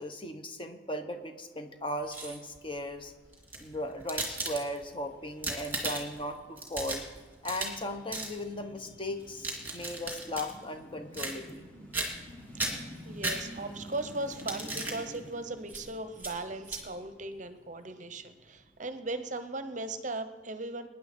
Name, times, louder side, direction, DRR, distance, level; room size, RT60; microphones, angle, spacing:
voice 1, 0.0-3.1 3.6-7.0 7.4-11.7, left 1 dB, 25° left, 6 dB, 1.1 m, -37 dB
sound 1, 1.9-2.6 3.3-4.9 5.3-6.2 6.6-7.8 8.1-8.3 9.2-10.5 11.1-11.6 11.9-12.3 12.6-13.8 14.3-15.0 15.7-15.8 16.2-16.3 16.6-16.8, right 2 dB, 10° right, 2.3 m, -36 dB
sound 2, 3.3-20.0, equal, 10° left, 1.8 m, -51 dB
voice 2, 12.7-20.9, right 2 dB, 40° right, 10 dB, 0.8 m, -38 dB
23.5 x 10.0 x 4.4 m, 1.3 s
head